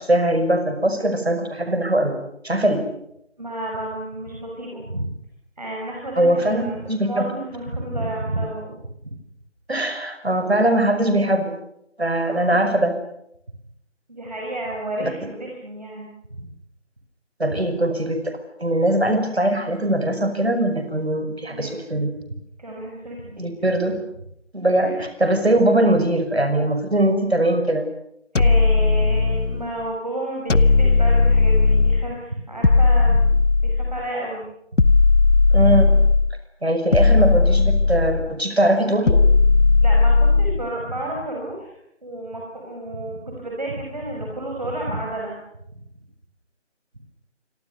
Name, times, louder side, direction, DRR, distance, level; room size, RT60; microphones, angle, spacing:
voice 1, 0.0-2.2 2.4-2.9 6.2-7.3 9.7-11.6 12.0-13.0 15.0-15.1 17.4-18.3 18.6-22.1 23.4-24.0 24.5-27.8 35.5-35.8 36.6-39.2, right 1 dB, 55° right, 8 dB, 5.8 m, -21 dB
voice 2, 3.4-5.2 5.6-8.8 9.0-9.1 12.2-12.6 14.1-16.5 17.5-17.6 21.5-21.8 22.6-23.4 24.6-24.9 28.3-34.4 34.7-35.0 39.8-41.7 42.0-45.4, right 1 dB, 35° right, -1 dB, 5.6 m, -31 dB
sound 1, 28.4-29.7 30.5-32.1 32.6-34.1 34.8-36.4 36.9-38.3 39.1-40.7, left 3 dB, 80° left, 0.9 m, -16 dB
27.5 x 24.0 x 6.8 m, 0.78 s
figure-of-eight pair, 170°, 36 cm